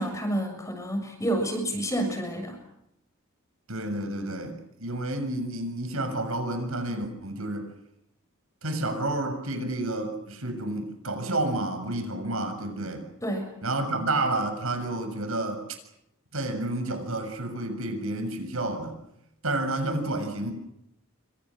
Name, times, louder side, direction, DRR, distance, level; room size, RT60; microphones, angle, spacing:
voice 1, 0.0-2.6 13.2-13.5, right 1 dB, 15° left, 5 dB, 6.7 m, -29 dB
voice 2, 3.7-7.7 8.6-13.0 13.6-15.6 16.3-19.0 19.4-20.5, right 2 dB, 70° right, 7 dB, 7.1 m, -30 dB
28.0 x 25.5 x 6.4 m, 0.79 s
head